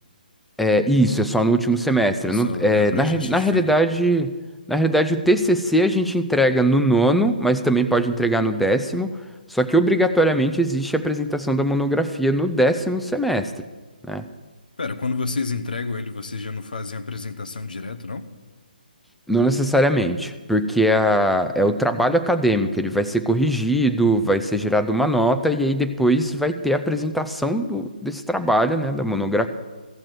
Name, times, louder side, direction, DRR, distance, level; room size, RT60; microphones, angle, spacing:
voice 1, 0.6-4.3 4.7-9.1 9.5-13.5 14.1-14.3 19.3-29.5, right 1 dB, ahead, 7 dB, 0.4 m, -20 dB
voice 2, 2.2-3.8 14.8-18.3, left 4 dB, 60° left, 9 dB, 0.9 m, -30 dB
14.0 x 7.3 x 7.8 m, 1.3 s
figure-of-eight pair, 140°, 5 cm